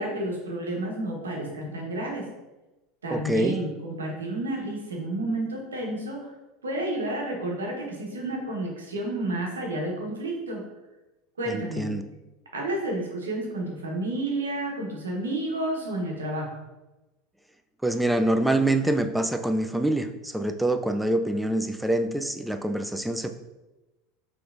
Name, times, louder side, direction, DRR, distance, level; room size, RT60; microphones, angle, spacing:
voice 1, 0.0-2.3 3.0-6.2 6.6-10.6 11.4-11.9 12.5-16.5, right 1 dB, 85° right, 0 dB, 1.1 m, -30 dB
voice 2, 3.1-3.6 11.5-12.0 17.8-23.3, right 1 dB, 5° right, 7 dB, 0.4 m, -25 dB
5.7 x 3.2 x 2.6 m, 1.1 s
hypercardioid pair, 80°, 0 cm